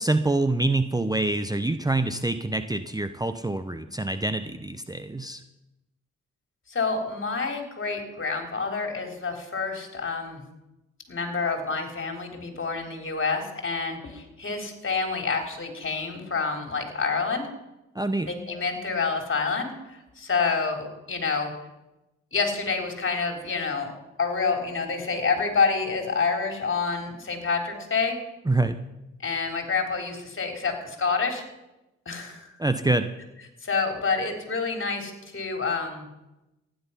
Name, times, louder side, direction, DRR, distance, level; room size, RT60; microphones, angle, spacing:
voice 1, 0.0-5.4 17.9-18.3 28.5-28.8 32.6-33.1, right 2 dB, 15° right, 10 dB, 0.8 m, -26 dB
voice 2, 6.7-10.4 11.1-17.5 18.3-21.5 22.3-23.9 24.2-28.2 29.2-31.4 32.1-32.4 33.6-36.1, left 4 dB, 40° left, 4 dB, 3.6 m, -28 dB
15.0 x 10.5 x 5.7 m, 0.97 s
cardioid pair, 55°, 30 cm